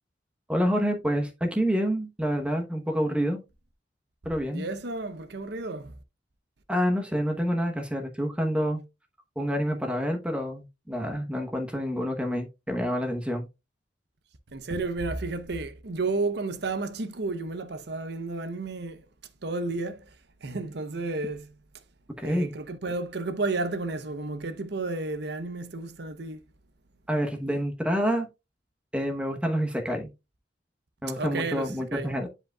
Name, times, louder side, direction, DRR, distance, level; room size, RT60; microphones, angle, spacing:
voice 1, 0.5-3.4 4.2-4.7 6.7-8.8 9.4-13.5 22.2-22.5 27.1-28.3 28.9-30.1 31.0-32.3, equal, 5° right, 0.9 m, -28 dB
voice 2, 4.5-5.9 14.5-19.0 19.4-20.1 20.4-21.5 22.2-26.4 31.2-32.1, right 3 dB, 65° right, 0.8 m, -32 dB
10.0 x 5.1 x 2.3 m
head